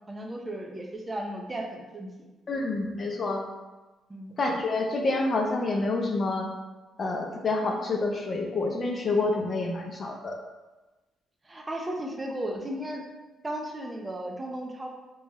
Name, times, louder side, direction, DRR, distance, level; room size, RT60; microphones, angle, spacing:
voice 1, 0.1-2.1 4.1-4.4 4.7-4.8 11.4-13.0 13.4-14.9, right 1 dB, 20° right, 1 dB, 0.5 m, -35 dB
voice 2, 2.5-3.4 4.4-6.5 7.0-10.4, left 2 dB, 40° left, 2 dB, 0.5 m, -28 dB
2.9 x 2.3 x 4.1 m, 1.1 s
cardioid pair, 90°, 0 cm